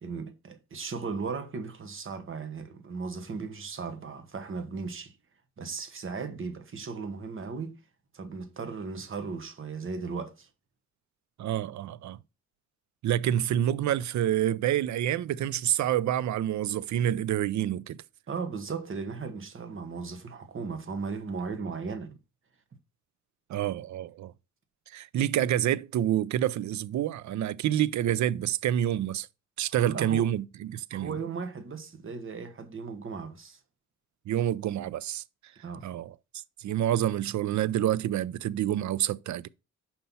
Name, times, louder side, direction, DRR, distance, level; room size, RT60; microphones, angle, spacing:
voice 1, 0.0-5.2 5.6-7.8 8.1-10.5 18.3-22.2 29.8-30.3 30.9-33.6 35.6-35.9, right 5 dB, 45° right, 1.2 m, -36 dB
voice 2, 11.4-12.2 13.0-18.0 23.5-24.3 24.9-29.3 29.6-31.2 34.3-35.2 35.8-39.5, right 11 dB, 70° right, 0.5 m, -28 dB
5.5 x 4.4 x 5.4 m
cardioid pair, 105°, 30 cm